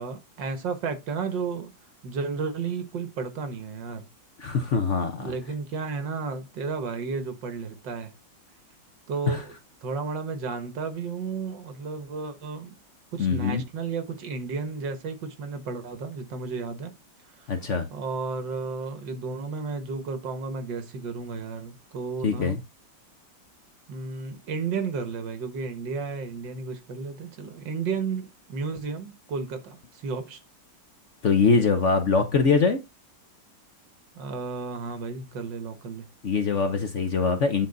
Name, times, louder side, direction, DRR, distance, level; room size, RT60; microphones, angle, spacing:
voice 1, 0.0-1.7 2.0-4.1 5.2-8.1 9.1-9.5 9.8-12.8 13.1-16.9 17.4-17.5 17.9-22.6 23.9-30.4 34.1-36.1, right 5 dB, 70° right, 1.9 m, -33 dB
voice 2, 4.4-5.3 9.3-9.4 13.2-13.6 17.5-17.9 22.2-22.6 31.2-32.8 36.2-37.7, left 5 dB, 50° left, 1.0 m, -23 dB
9.1 x 4.1 x 3.9 m
omnidirectional pair, 2.1 m